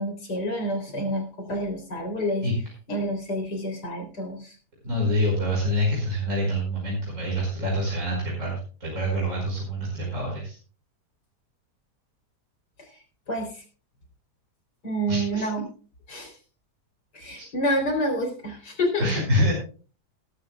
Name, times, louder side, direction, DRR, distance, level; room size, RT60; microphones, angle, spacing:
voice 1, 0.0-2.5 2.9-4.5 13.3-13.6 14.8-15.6 16.1-16.3 17.1-19.1, equal, 75° left, 4 dB, 4.2 m, -28 dB
voice 2, 4.8-10.6 15.1-15.5 17.4-17.5 19.0-19.5, equal, 45° right, -3 dB, 5.5 m, -26 dB
19.5 x 12.5 x 2.3 m, 0.37 s
omnidirectional pair, 1.8 m